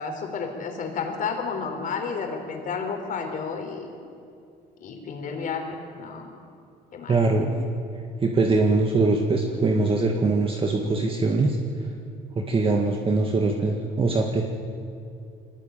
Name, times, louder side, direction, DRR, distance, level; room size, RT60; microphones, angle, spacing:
voice 1, 0.0-3.9 4.8-6.3 6.9-7.2, left 5 dB, 50° left, 4 dB, 4.6 m, -31 dB
voice 2, 7.1-7.5 8.2-11.9 12.3-14.4, right 3 dB, 30° right, 2 dB, 1.9 m, -22 dB
23.0 x 18.5 x 9.2 m, 2.5 s
cardioid pair, 110°, 17 cm